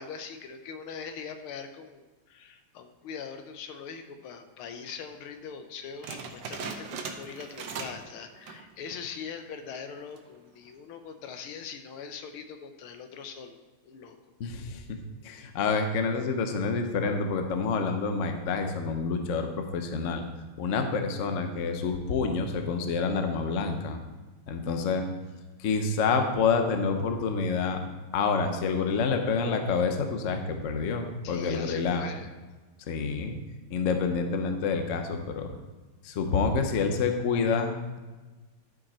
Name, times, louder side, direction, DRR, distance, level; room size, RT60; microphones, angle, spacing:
voice 1, 0.0-13.6 13.8-14.2 31.2-32.3, left 6 dB, 85° left, 7 dB, 1.6 m, -42 dB
sound 1, 6.0-8.1 8.4-8.7 9.2-9.3 10.0-10.4, right 5 dB, 65° right, 1.3 m, -39 dB
voice 2, 14.4-15.0 15.2-19.5 19.7-20.2 20.6-24.0 24.5-25.0 25.6-27.8 28.1-32.0 32.9-33.3 33.7-35.5 36.0-38.0, left 5 dB, 55° left, 5 dB, 0.8 m, -28 dB
12.0 x 5.2 x 4.3 m, 1.2 s
omnidirectional pair, 2.3 m